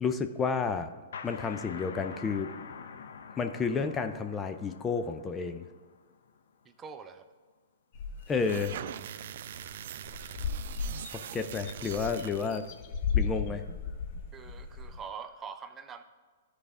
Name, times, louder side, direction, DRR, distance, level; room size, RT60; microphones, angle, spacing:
voice 1, 0.0-0.9 1.2-2.5 3.4-5.7 8.3-8.8 11.1-12.7 13.1-13.7, left 5 dB, 20° left, 7 dB, 0.5 m, -31 dB
sound 1, 1.1-6.5, left 6 dB, 75° left, 0.6 m, -46 dB
voice 2, 6.7-7.2 14.3-16.0, right 6 dB, 20° right, 8 dB, 0.6 m, -44 dB
sound 2, 7.9-8.7 9.1-9.2 9.5-9.7 10.0-15.0, left 6 dB, 50° left, 1.0 m, -35 dB
sound 3, 8.3-12.7, right 10 dB, 60° right, 0.3 m, -42 dB
12.5 x 4.9 x 3.6 m, 1.5 s
hypercardioid pair, 120°, 0 cm